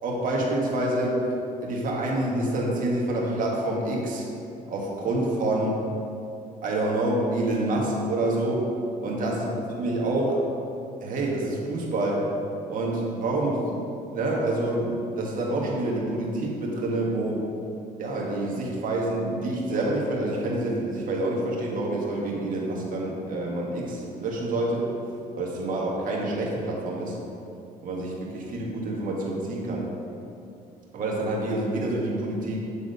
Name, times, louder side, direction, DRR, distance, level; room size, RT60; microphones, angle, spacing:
voice 1, 0.0-1.2 1.6-4.2 4.7-5.7 6.6-8.7 9.0-10.4 11.0-12.3 12.7-17.4 18.0-24.9 25.4-27.1 27.8-29.8 30.9-32.6, right 1 dB, 55° right, -3 dB, 1.6 m, -27 dB
8.5 x 3.6 x 5.4 m, 2.7 s
cardioid pair, 110°, 17 cm